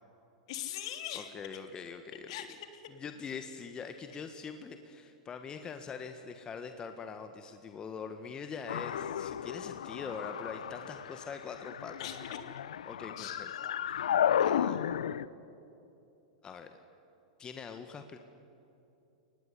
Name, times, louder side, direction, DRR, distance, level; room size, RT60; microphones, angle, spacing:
voice 1, 0.5-1.3 2.3-2.8 12.0-12.4 13.2-13.4, left 11 dB, 60° left, 7 dB, 3.4 m, -41 dB
voice 2, 1.1-2.5 2.9-12.1 12.8-13.5 13.8-15.0 16.4-16.8 17.4-18.2, left 5 dB, 20° left, 7 dB, 1.6 m, -43 dB
sound 1, 8.7-15.3, left 9 dB, 80° left, 0.7 m, -33 dB
24.0 x 19.5 x 9.9 m, 2.9 s
hypercardioid pair, 120°, 4 cm